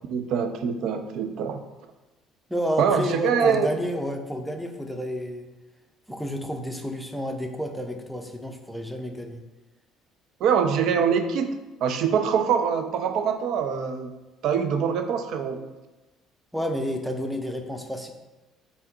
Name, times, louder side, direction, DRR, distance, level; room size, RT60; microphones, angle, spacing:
voice 1, 0.1-1.6 2.8-3.7 10.4-11.5 11.8-14.1 14.4-15.7, right 7 dB, 60° right, 7 dB, 0.4 m, -24 dB
voice 2, 2.5-5.5 6.1-9.4 16.5-18.1, equal, ahead, 4 dB, 0.6 m, -30 dB
3.4 x 2.7 x 4.2 m, 1.1 s
figure-of-eight pair, 55°, 0 cm